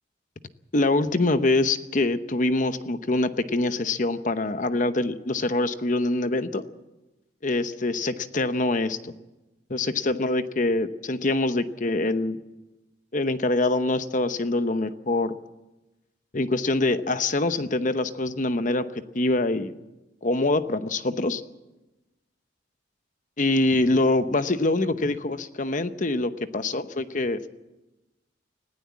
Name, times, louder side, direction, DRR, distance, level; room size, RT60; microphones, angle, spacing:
voice 1, 0.7-6.6 7.4-9.1 9.7-12.4 13.1-15.3 16.3-19.8 20.2-21.4 23.4-27.5, left 2 dB, 40° left, 11 dB, 0.9 m, -24 dB
20.0 x 16.0 x 8.5 m, 1.0 s
head